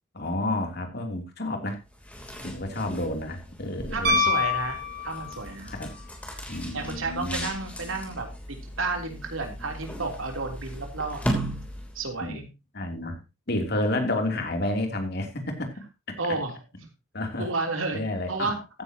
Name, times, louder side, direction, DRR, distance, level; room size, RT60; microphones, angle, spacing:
voice 1, 0.1-1.8 2.4-4.3 5.6-5.9 6.5-7.5 12.2-12.5 12.7-13.2 13.5-15.7 17.1-17.5 17.9-18.5, left 1 dB, 55° left, 4 dB, 3.1 m, -30 dB
sound 1, 1.8-12.2, equal, 5° left, 3.2 m, -37 dB
voice 2, 3.9-4.8 5.0-5.7 6.7-11.4 12.0-12.4 16.2-16.5 17.4-18.0 18.3-18.6, right 3 dB, 85° right, 4 dB, 3.4 m, -31 dB
Piano, 4.0-5.6 8.0-8.1, left 3 dB, 55° right, 3.9 m, -25 dB
15.0 x 10.0 x 2.9 m, 0.25 s
head